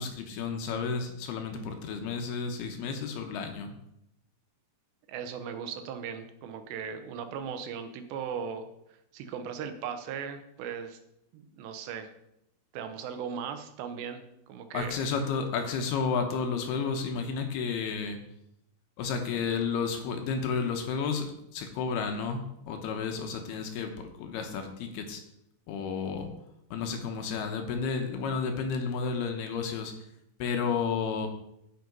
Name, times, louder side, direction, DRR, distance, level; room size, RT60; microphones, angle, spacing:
voice 1, 0.0-3.7 14.7-18.2 19.0-23.9 24.2-25.2 25.7-26.3 26.7-29.9 30.4-31.3, left 5 dB, 75° left, 5 dB, 2.8 m, -32 dB
voice 2, 5.1-8.7 9.1-11.0 11.3-12.1 12.7-15.0, right 7 dB, 80° right, 8 dB, 3.0 m, -38 dB
9.3 x 7.9 x 5.3 m, 0.80 s
omnidirectional pair, 5.0 m